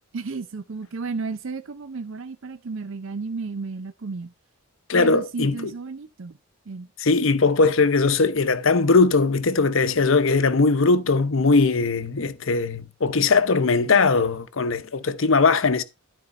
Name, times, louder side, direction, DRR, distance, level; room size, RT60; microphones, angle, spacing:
voice 1, 0.1-4.3 4.9-6.4 6.7-6.9, right 4 dB, 60° right, 0.5 m, -33 dB
voice 2, 4.9-5.6 7.0-15.8, left 4 dB, 60° left, 0.8 m, -20 dB
12.5 x 4.4 x 4.1 m
head